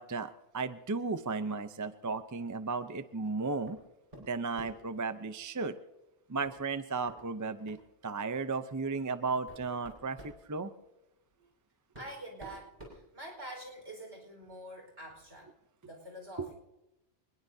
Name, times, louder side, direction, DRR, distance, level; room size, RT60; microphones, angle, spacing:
voice 1, 0.0-3.8 4.3-5.8 6.3-7.8 8.0-10.7 16.4-16.5, right 4 dB, 20° right, 11 dB, 0.6 m, -35 dB
sound 1, 3.7-3.8 4.1-4.9 6.5-6.6 7.1-7.2 7.7-7.9 8.7-8.8 9.3-10.4 11.4-11.5 11.9-13.7, right 1 dB, 35° right, 5.7 m, -51 dB
voice 2, 12.0-15.5 15.8-16.6, right 1 dB, 75° right, 2 dB, 5.2 m, -46 dB
25.5 x 20.5 x 2.8 m, 0.92 s
omnidirectional pair, 1.2 m